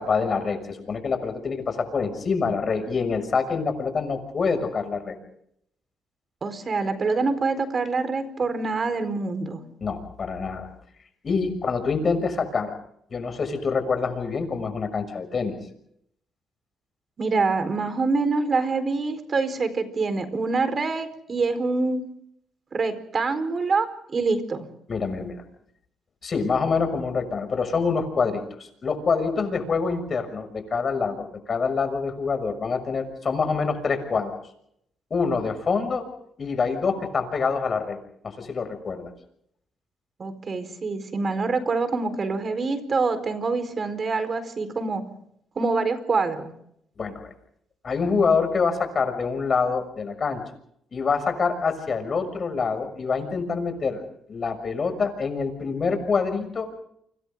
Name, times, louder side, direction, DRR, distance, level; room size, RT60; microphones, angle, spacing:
voice 1, 0.0-5.2 9.8-10.7 11.2-12.7 13.1-15.5 24.9-25.4 26.2-34.3 35.1-36.0 36.4-38.0 38.2-39.1 47.0-47.3 47.8-50.4 50.9-54.0 54.3-56.8, left 5 dB, 45° left, 8 dB, 6.4 m, -26 dB
voice 2, 6.4-9.6 17.2-22.0 22.7-24.7 40.2-45.0 45.6-46.5, right 4 dB, 40° right, 10 dB, 4.4 m, -25 dB
30.0 x 25.5 x 3.8 m, 0.71 s
cardioid pair, 90°, 0 cm